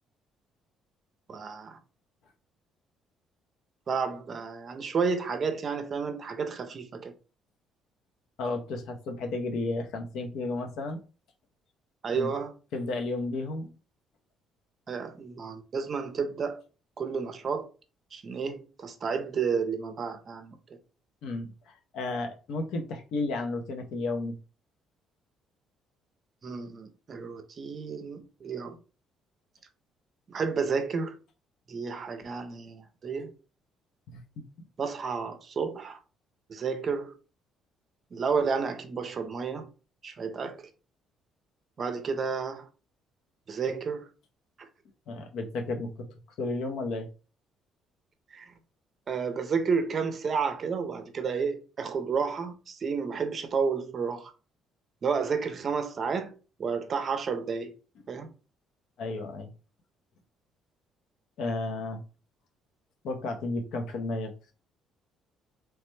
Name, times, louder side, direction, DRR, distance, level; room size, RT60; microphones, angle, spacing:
voice 1, 1.3-1.8 3.9-7.1 12.0-12.5 14.9-16.6 17.0-17.7 18.1-20.8 26.4-28.8 30.3-31.2 31.7-33.3 34.8-36.0 36.5-37.1 38.1-39.7 40.0-40.7 41.8-42.7 43.5-44.1 48.3-48.5 49.1-54.3 55.0-57.7 58.1-58.3, right 5 dB, 40° right, 0.5 m, -31 dB
voice 2, 8.4-11.0 12.1-12.3 12.7-13.7 21.2-24.4 34.1-34.2 45.1-46.1 46.4-47.1 59.0-59.5 61.4-62.0 63.0-64.3, left 2 dB, 70° left, 0.6 m, -33 dB
3.1 x 2.1 x 3.1 m
cardioid pair, 115°, 0 cm